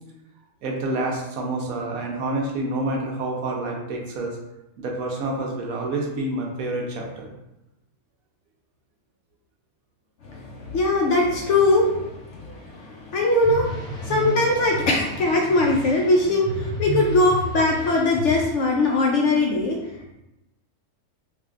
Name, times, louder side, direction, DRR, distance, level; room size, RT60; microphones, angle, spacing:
voice 1, 0.6-4.4 4.8-7.3, right 2 dB, 75° right, 0 dB, 1.1 m, -28 dB
voice 2, 10.2-19.8, left 2 dB, 65° left, -1 dB, 0.7 m, -21 dB
sound 1, 13.4-18.5, right 1 dB, 5° left, 0.3 m, -32 dB
4.8 x 2.5 x 2.4 m, 0.91 s
omnidirectional pair, 1.6 m